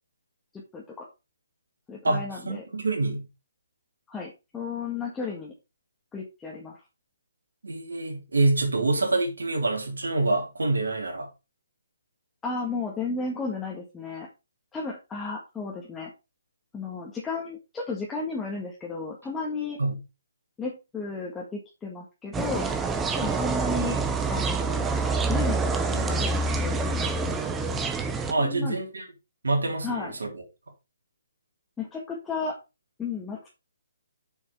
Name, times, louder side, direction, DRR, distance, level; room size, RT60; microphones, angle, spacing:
voice 1, 0.5-1.1 1.9-2.6 4.1-5.5 6.1-6.8 12.4-14.3 14.7-16.1 16.7-19.8 20.6-22.7 23.2-24.0 24.3-24.9 25.3-26.8 28.4-28.8 29.8-30.1 31.8-32.5 33.0-33.4, left 4 dB, 10° left, 1.7 m, -33 dB
voice 2, 2.0-3.3 7.6-11.3 19.8-20.0 28.3-29.1 29.4-30.4, right 2 dB, 85° right, 3.7 m, -26 dB
sound 1, 22.3-28.3, right 3 dB, 10° right, 0.9 m, -27 dB
7.2 x 6.4 x 4.7 m
hypercardioid pair, 150°, 0 cm